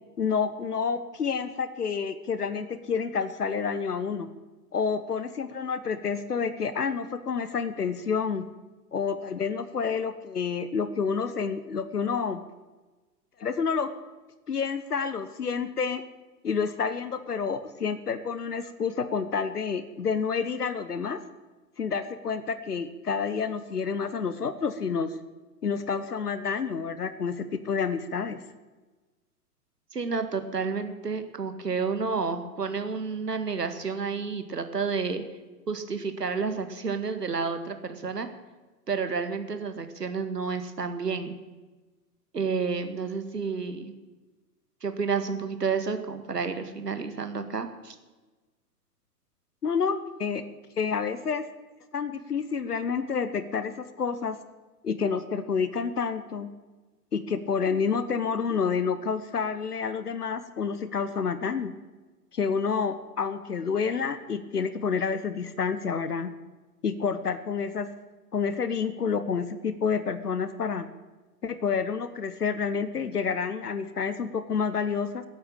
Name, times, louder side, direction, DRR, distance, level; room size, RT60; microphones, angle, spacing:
voice 1, 0.2-4.3 4.7-8.4 8.9-12.4 13.4-13.9 14.5-16.0 16.4-21.2 21.8-25.2 25.6-28.4 49.6-50.4 50.8-51.5 51.9-54.4 54.8-56.5 57.1-61.7 62.3-66.3 66.8-67.9 68.3-70.9 71.4-75.2, left 6 dB, 70° left, 12 dB, 1.1 m, -29 dB
voice 2, 29.9-35.2 35.7-38.3 38.9-41.3 42.3-43.9 44.8-48.0, right 5 dB, 75° right, 8 dB, 2.0 m, -30 dB
16.5 x 8.7 x 8.9 m, 1.2 s
figure-of-eight pair, 115°, 48 cm